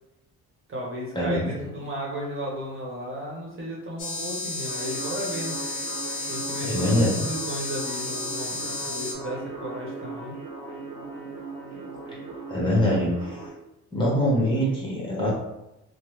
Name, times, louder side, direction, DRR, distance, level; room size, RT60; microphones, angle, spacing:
voice 1, 0.7-5.5 6.3-10.3, equal, 45° right, -3 dB, 1.0 m, -34 dB
sound 1, 4.0-9.1, left 2 dB, 45° left, 0.8 m, -32 dB
sound 2, 4.7-13.5, right 3 dB, 65° right, 0.9 m, -38 dB
voice 2, 6.6-7.2 12.5-13.4 13.9-15.3, equal, 15° left, -5 dB, 1.2 m, -23 dB
3.2 x 2.0 x 3.2 m, 0.91 s
cardioid pair, 90°, 30 cm